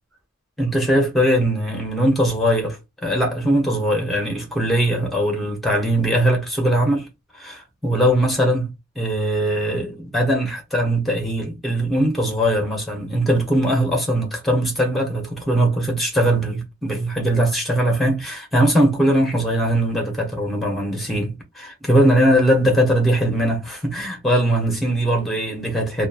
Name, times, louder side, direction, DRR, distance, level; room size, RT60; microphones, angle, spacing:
voice 1, 0.6-7.1 7.4-8.7 9.0-26.1, right 1 dB, ahead, 0.8 m, -20 dB
2.9 x 2.1 x 2.4 m
head